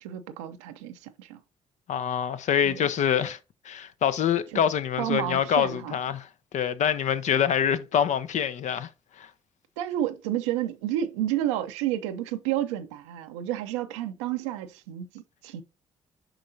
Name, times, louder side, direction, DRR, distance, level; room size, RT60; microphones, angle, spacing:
voice 1, 0.0-1.4 2.6-2.8 4.5-4.6 5.0-6.0 9.8-15.6, right 12 dB, 80° right, 0.6 m, -30 dB
voice 2, 1.9-3.4 3.6-6.3 6.5-8.9 9.2-9.3, left 8 dB, 55° left, 0.7 m, -25 dB
7.7 x 5.2 x 2.7 m
hypercardioid pair, 45°, 15 cm